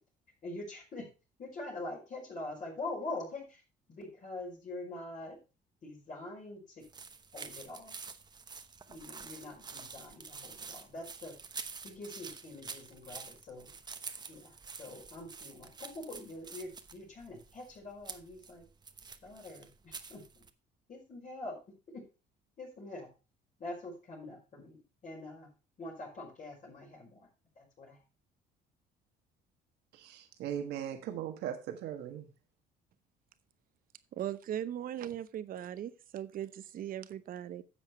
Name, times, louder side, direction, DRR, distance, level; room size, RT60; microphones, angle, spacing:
voice 1, 0.4-1.1 1.4-3.6 3.9-5.4 5.8-6.8 7.3-8.0 8.9-11.3 11.8-13.8 14.3-18.6 19.2-20.4 20.9-21.6 21.9-22.0 22.6-23.1 23.6-25.5 25.8-27.3 27.5-28.0, left 2 dB, 50° left, 5.1 m, -44 dB
sound 1, 6.8-20.5, right 5 dB, 25° right, 0.9 m, -48 dB
voice 2, 30.0-32.3, right 10 dB, 80° right, 1.5 m, -39 dB
voice 3, 34.1-37.6, right 11 dB, 60° right, 0.8 m, -39 dB
10.0 x 7.2 x 4.4 m
cardioid pair, 110°, 17 cm